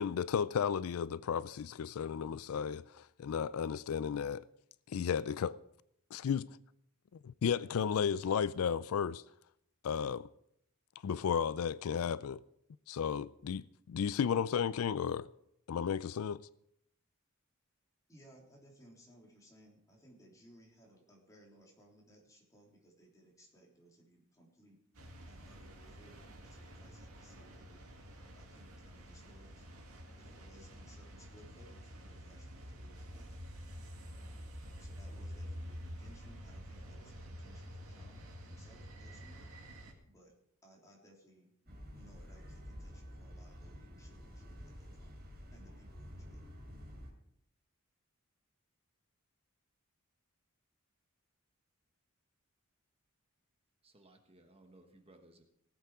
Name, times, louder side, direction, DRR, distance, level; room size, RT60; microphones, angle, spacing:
voice 1, 0.0-4.4 4.9-5.5 6.1-6.5 7.2-9.2 9.8-10.3 11.0-12.4 12.9-15.3 15.7-16.4, left 7 dB, 85° left, 0.4 m, -33 dB
voice 2, 18.1-24.8 25.3-27.8 28.3-29.7 30.2-33.3 34.2-34.5 34.8-39.4 40.0-40.3 40.6-45.1 45.5-46.5, right 1 dB, 15° left, 3.4 m, -62 dB
sound 1, 24.9-39.9, equal, 90° right, 2.1 m, -49 dB
sound 2, 41.7-47.1, equal, 50° right, 3.4 m, -50 dB
voice 3, 53.8-55.4, right 1 dB, 25° right, 1.3 m, -61 dB
18.0 x 8.3 x 4.8 m
head